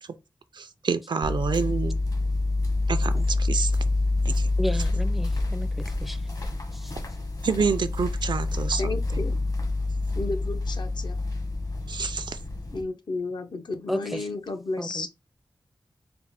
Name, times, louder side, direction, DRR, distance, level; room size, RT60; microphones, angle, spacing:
voice 1, 0.5-2.0 2.9-3.7 4.2-4.5 7.4-9.2 11.9-12.4, right 5 dB, 70° right, 0.5 m, -28 dB
sound 1, 1.2-12.8, left 2 dB, 50° left, 1.1 m, -27 dB
voice 2, 4.6-5.7 6.0-6.2 6.7-6.9 13.9-14.2 14.8-15.1, equal, ahead, 0.4 m, -32 dB
voice 3, 8.8-9.4 10.2-11.2 12.7-15.1, left 3 dB, 65° left, 0.7 m, -32 dB
4.3 x 2.1 x 4.1 m
wide cardioid pair, 65°, 8 cm